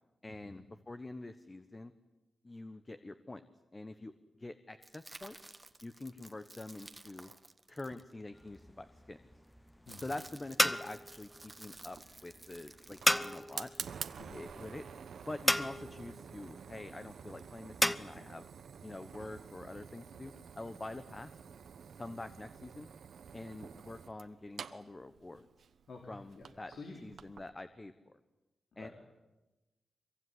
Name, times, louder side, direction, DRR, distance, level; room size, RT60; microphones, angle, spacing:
voice 1, 0.2-1.9 2.4-3.4 3.7-4.1 4.4-5.4 5.8-7.3 7.7-9.2 10.0-13.7 14.3-14.8 15.3-18.4 18.8-21.3 21.9-22.9 23.3-25.7 26.1-26.7 27.0-28.1 28.8-28.9, left 2 dB, 25° left, 10 dB, 1.2 m, -46 dB
sound 1, 4.8-8.6 9.4-14.7, right 2 dB, 20° right, 1.5 m, -54 dB
sound 2, 8.3-18.0, left 1 dB, 10° left, 0.9 m, -35 dB
Fire, 11.8-27.5, right 7 dB, 80° right, 1.2 m, -49 dB
voice 2, 25.9-27.0 28.7-28.9, left 3 dB, 70° left, 1 dB, 3.9 m, -50 dB
25.0 x 23.5 x 9.7 m, 1.1 s
wide cardioid pair, 105°, 0 cm